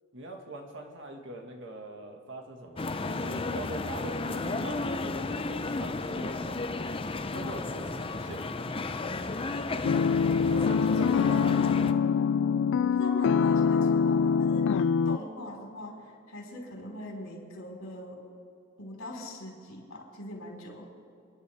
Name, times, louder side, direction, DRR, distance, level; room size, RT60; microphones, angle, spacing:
voice 1, 0.1-6.6 7.3-8.4 10.5-11.6, right 2 dB, 65° right, 2 dB, 1.9 m, -42 dB
sound 1, 2.8-11.9, left 3 dB, 25° left, 0.6 m, -33 dB
sound 2, 9.8-15.2, left 6 dB, 65° left, 0.3 m, -24 dB
voice 2, 10.8-12.1 12.8-15.9 16.3-18.2 18.8-20.9, left 1 dB, 85° left, -2 dB, 4.6 m, -41 dB
30.0 x 11.0 x 3.6 m, 2.6 s
head